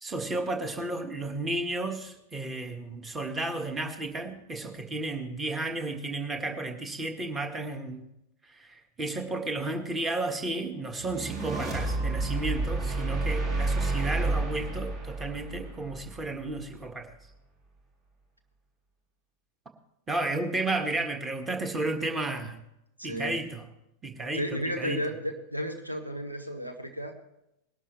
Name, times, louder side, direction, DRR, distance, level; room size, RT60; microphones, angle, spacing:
voice 1, 0.0-8.0 8.4-17.1 20.1-22.6 23.0-23.7 24.0-25.0, right 2 dB, 15° right, 6 dB, 1.6 m, -33 dB
sound 1, 11.0-16.3, right 3 dB, 35° right, 2.4 m, -30 dB
voice 2, 23.0-23.4 24.3-27.1, equal, 85° right, 4 dB, 1.5 m, -33 dB
20.0 x 12.0 x 3.2 m, 0.82 s
figure-of-eight pair, 90°, 0 cm